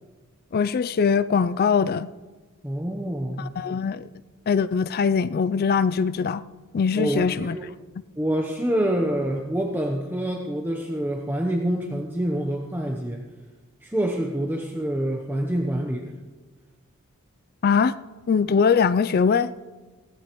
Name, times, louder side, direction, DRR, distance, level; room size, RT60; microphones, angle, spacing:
voice 1, 0.5-2.1 3.4-4.1 4.5-6.4 6.7-7.6 17.6-18.0 18.3-19.5, left 6 dB, 45° left, 0.4 m, -22 dB
voice 2, 2.6-3.5 6.9-7.7 8.2-13.2 13.8-16.2, right 1 dB, 10° right, 0.8 m, -26 dB
16.5 x 15.5 x 3.0 m
head